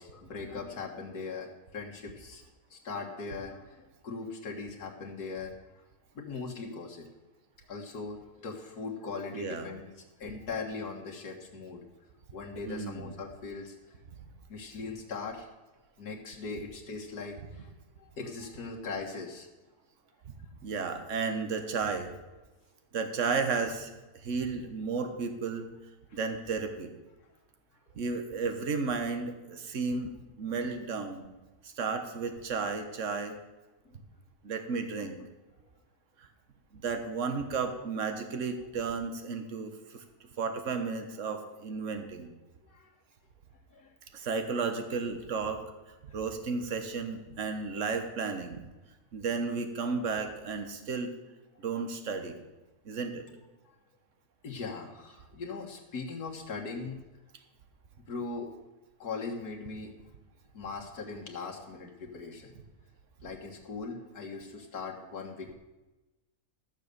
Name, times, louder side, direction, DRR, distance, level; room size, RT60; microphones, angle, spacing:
voice 1, 0.0-2.4 2.7-5.5 6.2-7.1 7.7-9.9 10.2-11.8 12.3-13.9 14.5-15.5 16.0-17.7 18.0-19.5 33.9-34.0 35.2-35.3 42.7-42.9 43.7-43.9 54.4-57.0 58.1-58.5 59.0-59.9 60.5-62.5 63.2-65.5, left 4 dB, 90° left, 0 dB, 2.1 m, -40 dB
voice 2, 9.3-9.7 12.6-13.1 17.4-17.5 20.6-22.1 22.9-23.9 24.2-25.7 26.1-26.9 28.0-31.3 31.6-33.4 34.4-35.2 36.2-36.3 36.7-40.0 40.4-42.3 44.1-45.6 46.1-48.6 49.1-51.1 51.6-52.3 52.8-53.2, right 4 dB, 55° right, 6 dB, 1.5 m, -33 dB
13.5 x 6.7 x 6.8 m, 1.1 s
omnidirectional pair, 1.6 m